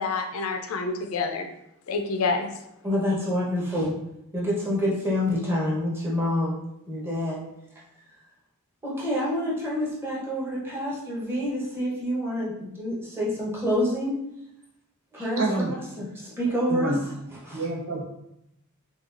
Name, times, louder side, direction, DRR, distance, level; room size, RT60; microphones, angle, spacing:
voice 1, 0.0-1.5 1.9-2.5, left 4 dB, 75° left, 4 dB, 0.5 m, -27 dB
voice 2, 2.8-3.9 4.3-6.6 6.9-7.4 8.8-14.1 15.1-15.4 16.0-16.9 17.5-17.6, left 1 dB, 10° right, -6 dB, 1.0 m, -27 dB
voice 3, 15.2-15.7 16.7-17.0 17.5-18.0, right 2 dB, 65° right, -3 dB, 1.1 m, -27 dB
5.8 x 2.4 x 2.5 m, 0.82 s
head